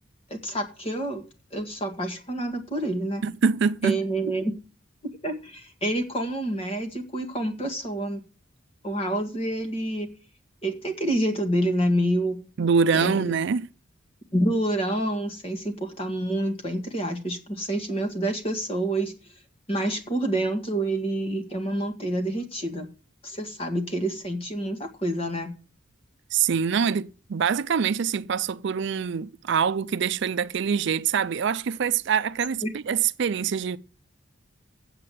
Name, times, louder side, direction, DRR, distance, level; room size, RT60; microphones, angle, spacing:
voice 1, 0.3-1.2 1.5-3.2 3.8-4.5 5.2-8.3 8.8-10.1 10.6-12.4 12.9-13.3 14.3-19.1 19.7-22.9 23.2-25.5 32.6-32.7, right 1 dB, 30° left, 1.8 m, -28 dB
voice 2, 3.2-4.0 12.6-13.7 26.3-33.8, right 6 dB, 60° right, 0.4 m, -24 dB
8.1 x 7.6 x 7.6 m
head